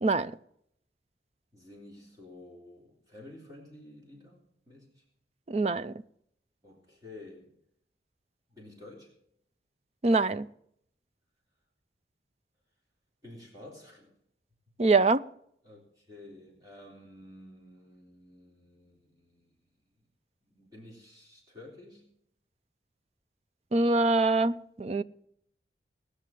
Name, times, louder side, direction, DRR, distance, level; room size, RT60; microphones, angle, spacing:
voice 1, 0.0-0.3 5.5-5.9 10.0-10.5 14.8-15.2 23.7-25.0, right 3 dB, 35° right, 0.4 m, -24 dB
voice 2, 1.5-5.0 6.6-7.5 8.5-9.1 13.2-14.1 15.6-19.7 20.4-22.0, left 2 dB, 20° right, 3.5 m, -51 dB
19.0 x 6.5 x 7.5 m
head